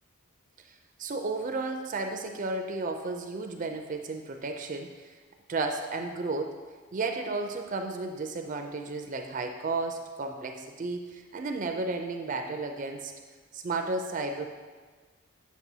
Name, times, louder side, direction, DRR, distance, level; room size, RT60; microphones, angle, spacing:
voice 1, 1.0-5.2 5.5-6.6 6.9-13.1 13.5-14.5, right 3 dB, 35° right, 5 dB, 0.4 m, -33 dB
7.2 x 7.2 x 2.7 m, 1.4 s
head